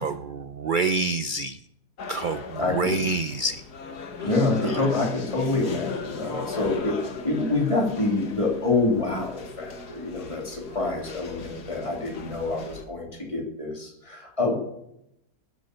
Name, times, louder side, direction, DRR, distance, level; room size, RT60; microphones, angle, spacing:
voice 1, 0.0-1.6 2.1-3.6 4.6-4.8, right 3 dB, 80° right, 11 dB, 0.4 m, -27 dB
sound 1, 2.0-12.8, left 4 dB, 80° left, 2.0 m, -38 dB
voice 2, 2.6-3.0 4.2-14.5, left 3 dB, 20° left, -1 dB, 3.2 m, -26 dB
21.0 x 8.3 x 6.8 m, 0.83 s
omnidirectional pair, 1.7 m